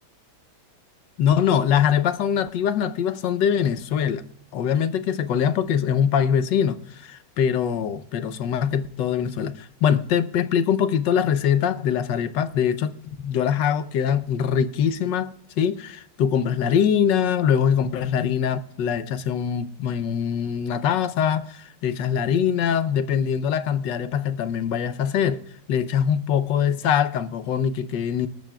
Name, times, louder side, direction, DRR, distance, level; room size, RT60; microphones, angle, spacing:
voice 1, 1.2-4.2 4.5-12.9 13.2-25.4 25.7-28.3, left 8 dB, 90° left, 1.5 m, -23 dB
28.0 x 13.5 x 2.3 m
omnidirectional pair, 1.9 m